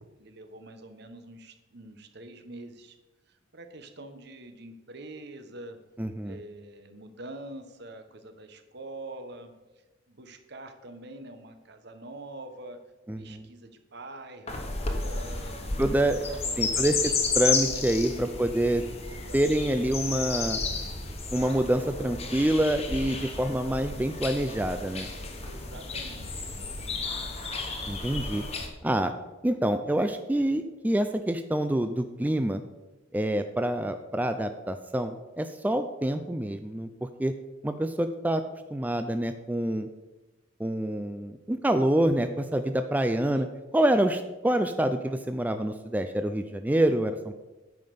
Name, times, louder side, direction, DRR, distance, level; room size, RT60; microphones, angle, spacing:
voice 1, 0.0-3.0 3.3-5.8 6.2-9.5 10.1-12.8 13.1-14.6 14.8-15.7 16.1-17.2 18.1-18.3 19.1-19.5 25.4-27.0 43.3-43.5, right 2 dB, 60° right, 8 dB, 1.1 m, -45 dB
voice 2, 6.0-6.4 13.1-13.5 15.8-16.2 16.6-18.8 19.3-20.6 21.3-25.1 27.9-28.4 28.8-29.1 29.4-32.6 33.1-37.3 37.6-38.4 38.7-39.9 40.6-43.5 43.7-47.3, right 1 dB, 10° right, 8 dB, 0.3 m, -26 dB
sound 1, 14.5-28.7, left 4 dB, 35° left, 1.3 m, -32 dB
9.4 x 5.4 x 6.8 m, 1.1 s
head